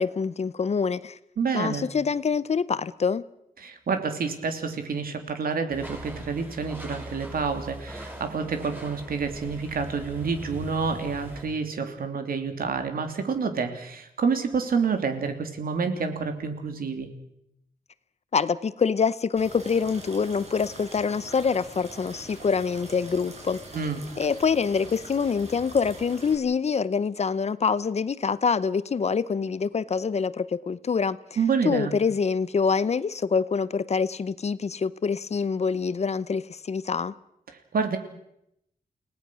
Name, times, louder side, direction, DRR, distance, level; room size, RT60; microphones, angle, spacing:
voice 1, 0.0-1.2 1.5-3.2 18.3-23.6 24.2-31.2 31.6-37.1, left 5 dB, 45° left, 0.8 m, -25 dB
voice 2, 1.4-1.9 3.6-17.1 23.7-24.0 31.4-31.9 37.7-38.0, right 5 dB, 75° right, 3.1 m, -28 dB
sound 1, 5.7-11.4, equal, 10° right, 7.3 m, -41 dB
sound 2, 19.4-26.4, right 2 dB, 45° right, 5.5 m, -44 dB
29.5 x 18.5 x 6.3 m
wide cardioid pair, 125°, 15 cm